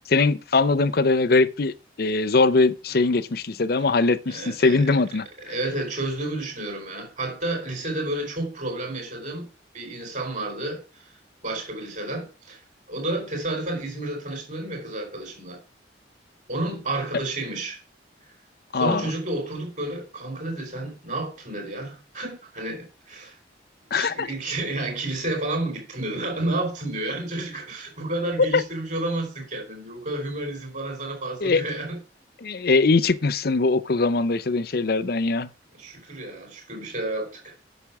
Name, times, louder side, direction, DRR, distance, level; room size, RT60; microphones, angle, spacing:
voice 1, 0.1-5.3 18.7-19.1 23.9-24.3 28.5-28.6 31.4-31.6 32.4-35.5, left 3 dB, 55° left, 0.7 m, -21 dB
voice 2, 4.3-5.0 5.5-9.5 9.7-11.0 11.4-12.6 12.9-15.6 16.5-17.8 18.7-23.3 23.9-32.0 35.7-37.5, right 2 dB, 45° right, 4.4 m, -31 dB
8.4 x 7.0 x 6.0 m
head